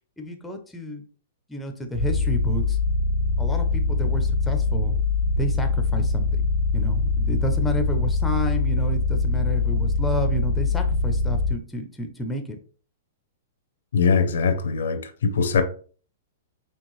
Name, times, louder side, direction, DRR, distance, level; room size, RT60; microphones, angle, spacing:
voice 1, 0.2-1.0 1.5-2.8 3.4-4.9 5.4-6.3 6.7-12.6, equal, 5° left, 0.5 m, -30 dB
sound 1, 1.9-11.5, left 3 dB, 60° right, 1.7 m, -23 dB
voice 2, 13.9-15.6, left 5 dB, 85° left, 0.7 m, -21 dB
4.5 x 3.4 x 3.0 m
hypercardioid pair, 160°, 0 cm